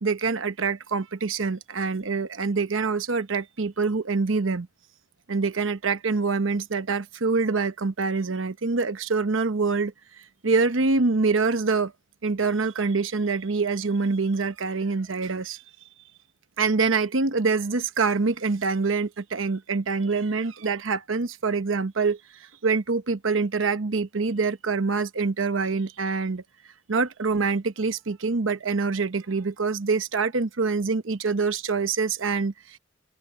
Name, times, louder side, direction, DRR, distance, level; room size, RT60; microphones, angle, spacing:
voice 1, 0.0-4.7 5.3-9.9 10.4-11.9 12.2-15.6 16.6-26.4 26.9-32.8, right 4 dB, 90° right, 1.0 m, -25 dB
open air
head